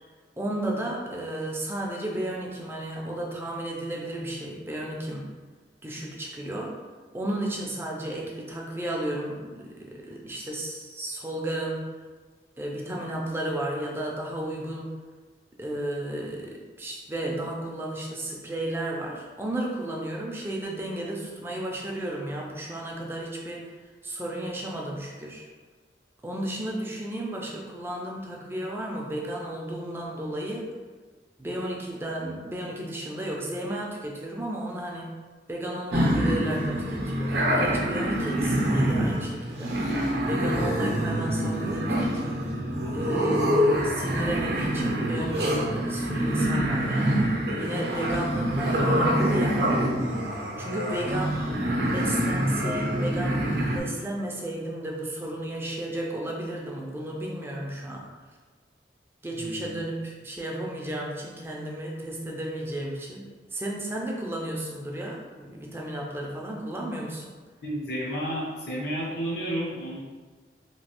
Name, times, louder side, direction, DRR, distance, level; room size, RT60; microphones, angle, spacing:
voice 1, 0.4-5.3 5.8-6.8 7.1-11.9 12.6-15.0 15.6-23.7 24.0-25.5 26.2-30.7 31.4-35.2 35.5-39.8 40.2-42.2 42.9-47.2 47.6-49.8 50.6-51.5 51.9-58.1 59.2-63.2 63.5-67.3, right 1 dB, 15° right, -2 dB, 0.4 m, -33 dB
sound 1, 35.9-53.8, equal, 60° right, 0.6 m, -26 dB
voice 2, 59.3-59.8 67.6-70.0, equal, 65° left, -5 dB, 0.7 m, -31 dB
3.0 x 2.6 x 2.9 m, 1.4 s
head